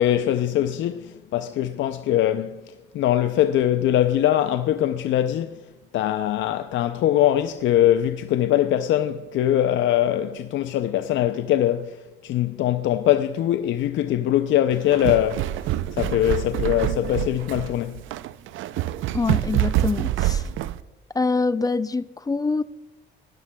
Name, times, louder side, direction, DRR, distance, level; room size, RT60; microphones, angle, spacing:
voice 1, 0.0-2.6 2.9-5.6 5.9-15.5 15.9-18.0, left 12 dB, 75° left, 0.5 m, -22 dB
sound 1, 14.7-20.8, right 14 dB, 80° right, 0.4 m, -26 dB
voice 2, 19.1-20.4 21.1-22.6, left 4 dB, 20° left, 0.4 m, -24 dB
17.5 x 11.0 x 2.2 m
cardioid pair, 90°, 20 cm